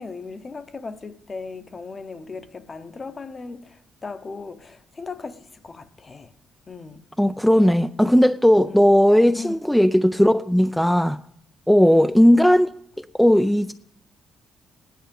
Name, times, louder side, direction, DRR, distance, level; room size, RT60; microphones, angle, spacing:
voice 1, 0.0-6.3 6.7-7.0 8.6-8.8 9.3-9.6 11.8-12.2, left 4 dB, 35° left, 0.9 m, -37 dB
voice 2, 7.2-11.2 11.7-12.7 13.0-13.7, equal, 5° left, 0.4 m, -17 dB
16.5 x 10.5 x 5.3 m
cardioid pair, 90°, 0 cm